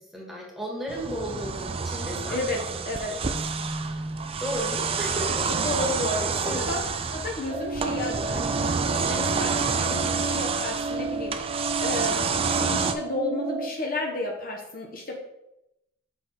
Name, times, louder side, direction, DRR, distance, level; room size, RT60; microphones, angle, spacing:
voice 1, 0.1-2.6 3.1-3.2 4.4-5.3 6.4-6.7, equal, ahead, -3 dB, 1.5 m, -34 dB
sound 1, 0.9-12.9, right 5 dB, 30° right, 0.4 m, -29 dB
voice 2, 2.3-3.1 5.3-6.8 7.1-11.5 11.8-12.2 12.5-15.2, left 2 dB, 45° left, 0 dB, 0.9 m, -32 dB
sound 2, 3.3-9.8, right 1 dB, 85° right, 1.0 m, -39 dB
sound 3, 7.5-13.7, right 3 dB, 60° right, 0.7 m, -32 dB
6.0 x 4.8 x 4.3 m, 0.87 s
head